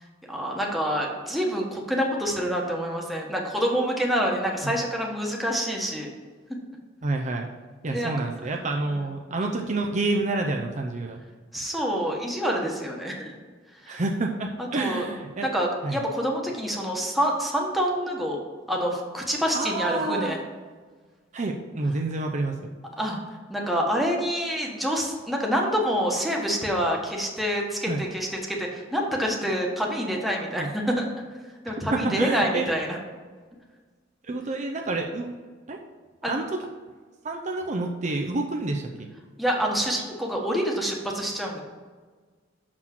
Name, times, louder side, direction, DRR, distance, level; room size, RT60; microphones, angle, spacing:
voice 1, 0.3-6.1 7.9-8.1 8.8-9.1 9.4-9.6 11.5-13.4 13.8-14.0 14.6-15.1 15.4-18.4 18.7-20.4 23.0-23.2 23.5-31.1 31.6-33.0 36.2-36.3 39.4-41.6, equal, ahead, -1 dB, 1.3 m, -27 dB
voice 2, 7.0-7.5 7.8-11.2 13.9-15.5 15.8-16.0 19.5-20.4 21.3-22.7 27.9-28.0 30.6-30.7 31.6-32.7 34.3-35.3 35.7-35.8 36.2-36.6 37.2-39.1, right 2 dB, 40° right, 2 dB, 0.6 m, -28 dB
6.2 x 6.0 x 5.9 m, 1.5 s
head